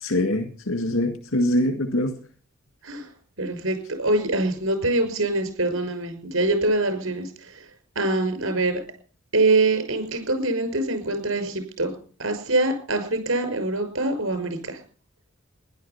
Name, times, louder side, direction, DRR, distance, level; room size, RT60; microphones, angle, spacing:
voice 1, 0.0-2.2, left 1 dB, 85° left, 6 dB, 2.1 m, -24 dB
voice 2, 3.4-7.7 8.0-8.8 9.3-11.9 12.2-14.8, right 2 dB, 85° right, 8 dB, 5.7 m, -24 dB
16.0 x 11.5 x 5.8 m, 0.41 s
head